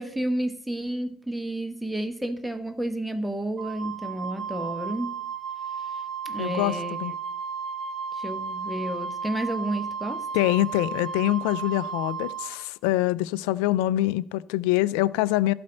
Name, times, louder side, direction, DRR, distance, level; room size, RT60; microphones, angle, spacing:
voice 1, 0.0-5.2 6.2-7.0 8.1-10.3, right 1 dB, 5° right, 1.3 m, -31 dB
Wind instrument woodwind instrument, 3.6-12.5, right 6 dB, 30° right, 2.2 m, -34 dB
voice 2, 6.4-7.1 10.3-15.5, left 16 dB, 75° left, 0.3 m, -25 dB
12.5 x 4.3 x 7.6 m
hypercardioid pair, 65°, 0 cm